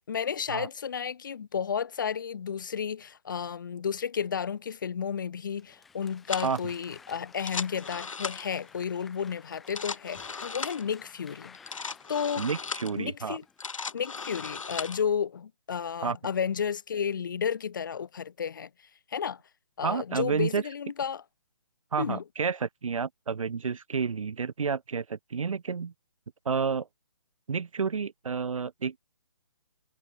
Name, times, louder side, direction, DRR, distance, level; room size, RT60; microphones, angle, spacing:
voice 1, 0.0-11.6 12.1-12.5 13.0-13.4 13.9-18.7 19.1-19.4 19.8-21.2 22.0-22.2, left 7 dB, 40° left, 3.8 m, -32 dB
Applause, 5.5-13.6, left 5 dB, ahead, 0.4 m, -53 dB
sound 1, 6.3-6.6 7.3-8.6 9.5-10.9 11.5-13.0 13.4-15.0, left 5 dB, 75° left, 2.3 m, -37 dB
voice 2, 12.4-13.4 16.0-16.2 19.8-20.6 21.9-25.9 26.4-26.9 27.5-29.0, right 5 dB, 80° right, 1.0 m, -30 dB
hypercardioid pair, 175°, 17 cm